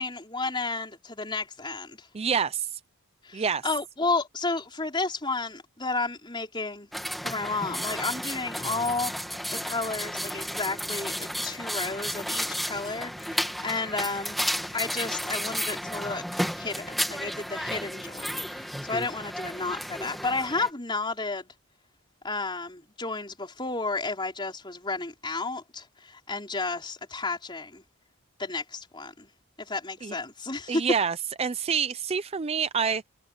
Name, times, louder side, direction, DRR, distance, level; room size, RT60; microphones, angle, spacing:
voice 1, 0.0-2.1 3.2-6.9 7.2-9.1 9.5-14.4 14.7-16.2 16.5-21.5 22.2-27.8 28.4-29.3 29.7-30.8, left 3 dB, 20° left, 4.6 m, -32 dB
voice 2, 2.1-2.8 3.3-3.6 30.0-30.2 30.7-33.1, right 6 dB, 25° right, 0.4 m, -27 dB
sound 1, 6.9-20.7, equal, ahead, 1.9 m, -33 dB
head